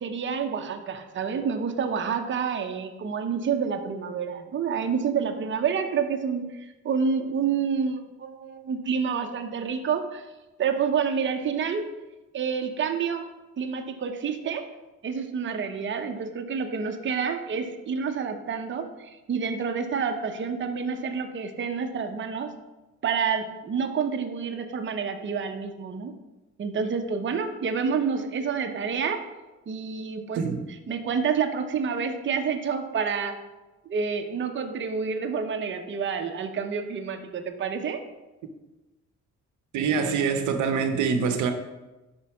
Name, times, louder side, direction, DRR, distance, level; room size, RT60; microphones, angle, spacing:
voice 1, 0.0-10.2 10.6-11.9 12.3-13.3 13.6-14.6 15.0-22.5 23.0-26.1 26.6-29.2 29.7-30.4 30.7-33.4 33.9-38.0, right 6 dB, 40° right, 0.7 m, -28 dB
voice 2, 30.4-30.7 39.7-41.5, right 6 dB, 75° right, 0.7 m, -25 dB
5.5 x 5.2 x 4.7 m
cardioid pair, 90°, 30 cm